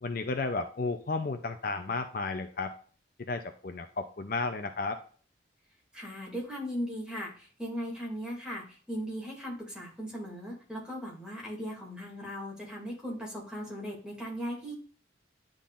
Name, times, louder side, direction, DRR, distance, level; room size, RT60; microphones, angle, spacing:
voice 1, 0.0-2.7 3.3-5.0, left 3 dB, 50° left, 7 dB, 0.5 m, -33 dB
voice 2, 5.9-14.7, equal, 5° right, -4 dB, 2.4 m, -38 dB
10.0 x 3.7 x 2.5 m, 0.43 s
head